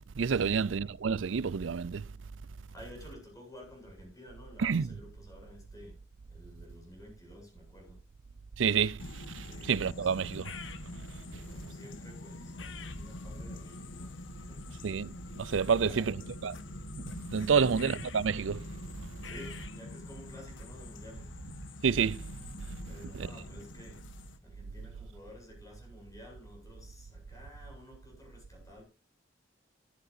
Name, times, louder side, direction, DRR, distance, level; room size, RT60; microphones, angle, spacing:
voice 1, 0.2-2.0 4.6-4.9 8.6-10.6 14.8-16.2 16.4-16.6 17.0-18.7 21.8-22.2 23.1-23.3, right 6 dB, 85° right, 0.5 m, -29 dB
voice 2, 2.7-6.0 6.3-8.0 9.5-10.1 11.3-14.8 15.7-16.2 17.6-17.7 19.2-21.3 22.8-24.0 24.4-28.8, left 1 dB, 20° left, 7.6 m, -52 dB
sound 1, 9.0-24.4, left 2 dB, 85° left, 1.4 m, -45 dB
13.5 x 13.0 x 2.7 m
head